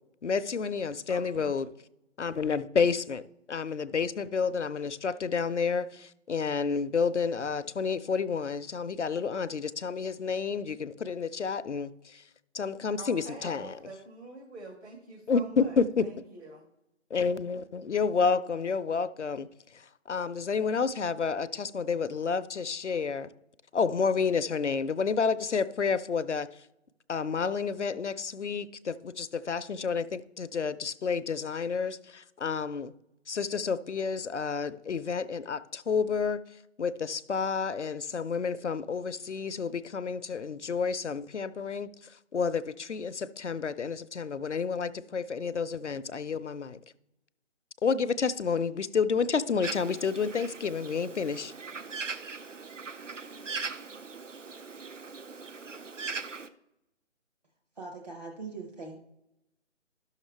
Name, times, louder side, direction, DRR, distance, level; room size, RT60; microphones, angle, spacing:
voice 1, 0.2-1.7 2.2-13.8 15.3-16.1 17.1-23.3 23.7-26.7 27.1-32.9 33.3-46.8 47.8-51.5, left 5 dB, 70° left, 0.6 m, -30 dB
voice 2, 1.1-1.5 13.0-16.6, right 2 dB, 65° right, 2.1 m, -46 dB
Bird, 49.6-56.5, right 4 dB, 80° right, 0.7 m, -40 dB
voice 3, 57.8-59.0, right 3 dB, 35° right, 0.8 m, -41 dB
12.0 x 6.5 x 3.3 m
figure-of-eight pair, 155°, 37 cm